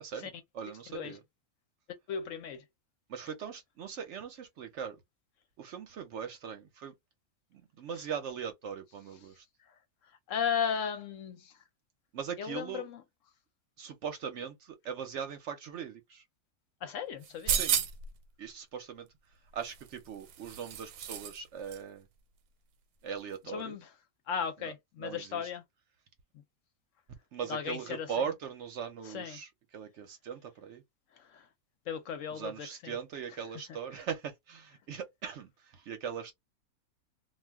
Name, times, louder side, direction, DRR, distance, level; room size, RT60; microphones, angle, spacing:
voice 1, 0.0-1.2 3.1-5.0 5.6-6.9 7.5-9.4 12.1-12.9 13.8-16.2 17.5-17.9 18.4-19.1 19.5-22.1 23.0-23.8 24.6-24.7 25.0-25.5 27.3-30.8 32.3-36.3, right 7 dB, 65° right, 0.8 m, -40 dB
voice 2, 2.1-2.6 10.3-11.4 12.4-13.0 16.8-17.6 23.5-23.9 24.3-25.6 27.5-28.1 29.1-29.4 31.9-32.9, left 7 dB, 70° left, 0.9 m, -35 dB
sound 1, 17.2-18.1 19.6-21.4 21.7-21.8, right 8 dB, 85° right, 1.1 m, -32 dB
2.3 x 2.2 x 3.3 m
omnidirectional pair, 1.5 m